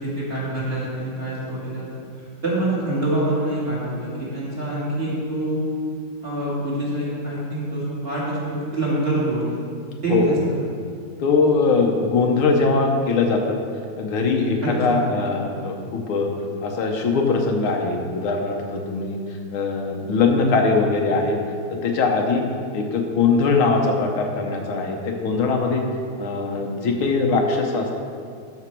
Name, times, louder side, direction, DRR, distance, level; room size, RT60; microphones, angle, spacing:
voice 1, 0.0-1.9 2.4-5.6 6.2-9.6 10.0-10.3 14.6-15.0, right 1 dB, 30° right, -7 dB, 2.5 m, -25 dB
voice 2, 11.2-13.6 14.0-16.3 16.6-19.2 19.5-21.4 21.7-22.5 22.7-25.8 26.2-28.0, left 4 dB, 85° left, 2 dB, 1.8 m, -21 dB
12.0 x 5.8 x 4.5 m, 2.3 s
omnidirectional pair, 2.3 m